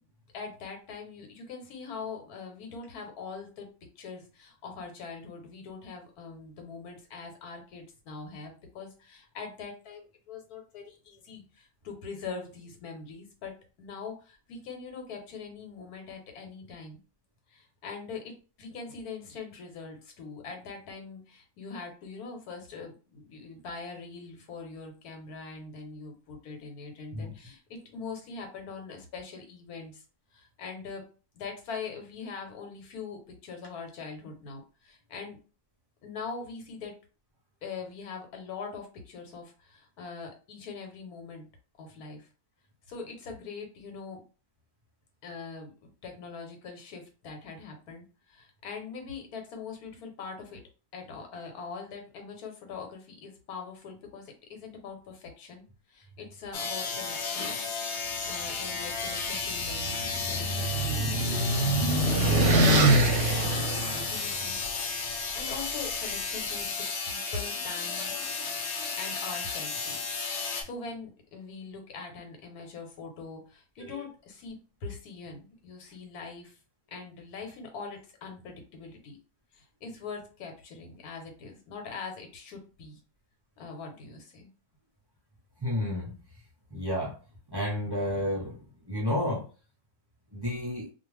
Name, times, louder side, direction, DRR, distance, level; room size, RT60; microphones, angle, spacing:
voice 1, 0.3-3.7 4.0-17.0 17.5-30.0 30.3-31.0 31.3-35.4 36.0-36.9 37.6-41.5 41.8-42.3 42.9-44.2 45.2-50.6 50.9-57.5 58.3-61.8 62.4-64.6 65.4-68.1 69.0-70.0 70.6-76.6 76.9-79.2 79.5-83.0 83.6-84.5, left 4 dB, 80° left, 1.3 m, -42 dB
sound 1, 56.5-70.6, left 4 dB, 60° left, 0.8 m, -33 dB
sound 2, 59.4-64.6, right 1 dB, 60° right, 0.8 m, -25 dB
voice 2, 85.6-86.2 86.7-87.2 87.5-89.5 90.3-90.9, left 1 dB, 30° right, 0.4 m, -31 dB
2.4 x 2.4 x 3.1 m
omnidirectional pair, 1.6 m